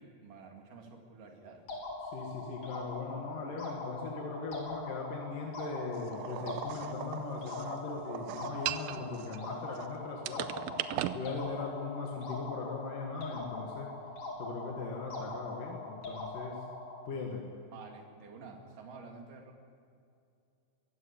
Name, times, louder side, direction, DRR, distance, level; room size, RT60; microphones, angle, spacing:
voice 1, 0.0-1.6 17.7-19.7, right 4 dB, 70° right, 2 dB, 4.0 m, -50 dB
sound 1, 1.7-17.1, left 2 dB, 55° left, 4.8 m, -42 dB
voice 2, 2.0-10.5 11.1-13.9 14.4-16.6 17.1-17.4, left 4 dB, 70° left, 0 dB, 3.4 m, -39 dB
sound 2, 6.1-9.9 10.3-11.2, right 14 dB, 90° right, 2.4 m, -38 dB
23.5 x 15.0 x 8.7 m, 2.5 s
omnidirectional pair, 4.0 m